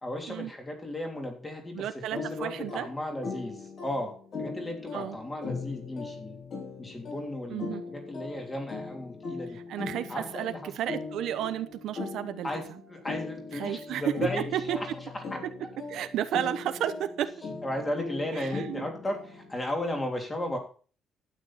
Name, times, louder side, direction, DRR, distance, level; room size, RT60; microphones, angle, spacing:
voice 1, 0.0-4.1 4.4-6.4 6.8-9.6 10.1-10.7 12.4-14.9 15.3-15.4 17.6-20.6, left 1 dB, 15° left, 3 dB, 3.2 m, -35 dB
voice 2, 1.7-2.9 4.9-5.2 7.5-7.8 9.7-12.5 13.5-14.0 14.5-14.8 15.9-17.3 18.3-18.8, right 11 dB, 70° right, 10 dB, 1.0 m, -32 dB
sound 1, 2.1-19.6, left 4 dB, 45° left, 6.0 m, -40 dB
12.5 x 9.6 x 4.2 m, 0.39 s
cardioid pair, 170°, 0 cm